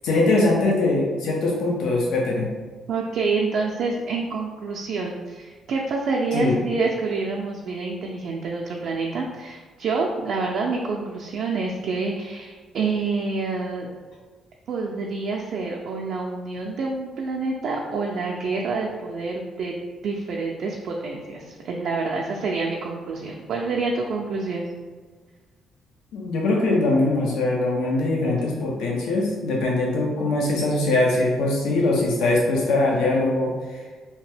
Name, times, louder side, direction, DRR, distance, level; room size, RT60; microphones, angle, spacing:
voice 1, 0.0-2.5 6.3-6.6 26.1-33.5, left 2 dB, 90° left, -2 dB, 0.5 m, -22 dB
voice 2, 2.9-13.9 14.7-19.7 20.0-24.7, right 4 dB, 70° right, -1 dB, 0.3 m, -27 dB
2.8 x 2.2 x 3.2 m, 1.4 s
cardioid pair, 90°, 0 cm